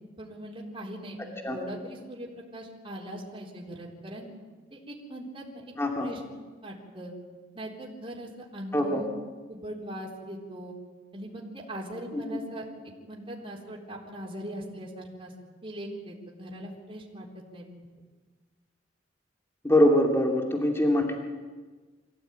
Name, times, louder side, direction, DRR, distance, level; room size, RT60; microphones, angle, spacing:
voice 1, 0.2-4.3 4.7-5.7 6.0-6.2 6.6-7.1 7.5-9.1 9.5-10.8 11.1-12.7 13.1-15.3 15.6-17.7, right 1 dB, 30° right, -3 dB, 4.0 m, -40 dB
voice 2, 5.8-6.1 8.7-9.0 12.1-12.4 19.6-21.2, left 1 dB, 15° left, 1 dB, 2.4 m, -23 dB
25.5 x 16.5 x 9.2 m, 1.4 s
head